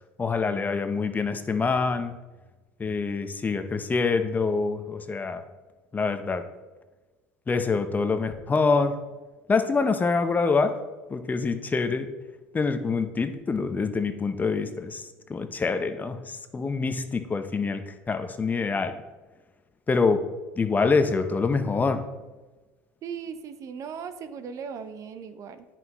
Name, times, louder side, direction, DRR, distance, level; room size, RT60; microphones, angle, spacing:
voice 1, 0.2-2.2 2.8-5.4 5.9-6.4 7.5-8.9 9.5-10.8 11.1-12.1 12.5-19.0 19.9-20.2 20.6-22.0, left 4 dB, 25° left, 8 dB, 0.7 m, -25 dB
voice 2, 23.0-25.7, right 6 dB, 50° right, 10 dB, 0.6 m, -38 dB
9.1 x 5.8 x 3.0 m, 1.2 s
hypercardioid pair, 80°, 7 cm